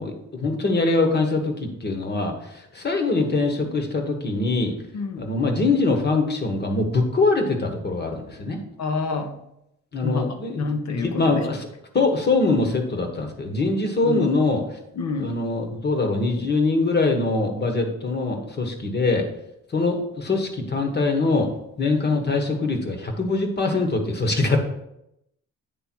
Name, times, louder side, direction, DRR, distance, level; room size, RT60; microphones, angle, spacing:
voice 1, 0.0-4.7 5.2-8.6 9.9-11.7 11.9-14.6 15.2-19.2 19.7-21.5 21.8-24.6, left 3 dB, 35° left, 5 dB, 1.4 m, -23 dB
voice 2, 8.8-9.3 10.0-10.3 10.5-11.4 14.0-14.2 15.0-15.3, left 4 dB, 65° left, 5 dB, 1.1 m, -27 dB
8.9 x 3.4 x 4.5 m, 0.81 s
cardioid pair, 90°, 30 cm